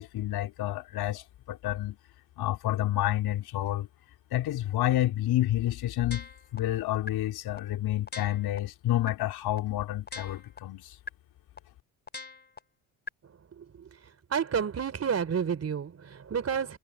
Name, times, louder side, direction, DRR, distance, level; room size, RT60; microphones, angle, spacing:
voice 1, 0.0-2.0 2.4-3.9 4.3-10.9, left 14 dB, 70° left, 4.4 m, -29 dB
sound 1, 6.1-6.6 7.1-7.2 7.6-7.7 8.1-8.6 9.1-9.2 9.6-9.7 10.1-10.6 11.1-11.2 11.6-11.7 12.1-12.6 13.1-13.2, left 4 dB, 25° left, 3.7 m, -40 dB
voice 2, 13.5-13.9 14.3-16.8, right 7 dB, 40° right, 4.0 m, -30 dB
cardioid pair, 90°, 39 cm